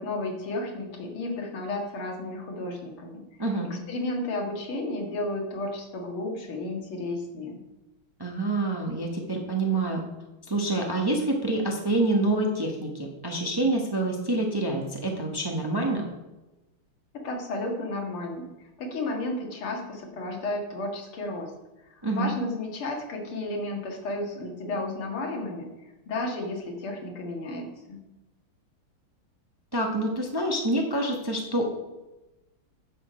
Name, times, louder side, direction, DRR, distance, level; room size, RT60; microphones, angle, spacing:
voice 1, 0.0-3.2 3.6-7.6 17.1-18.5 18.8-21.5 22.2-25.7 26.1-28.0, left 2 dB, 85° left, 1 dB, 2.6 m, -32 dB
voice 2, 8.2-10.0 10.5-16.0 22.0-22.3 29.7-31.7, right 2 dB, 15° right, 1 dB, 0.9 m, -27 dB
10.0 x 6.9 x 5.0 m, 1.0 s
omnidirectional pair, 2.3 m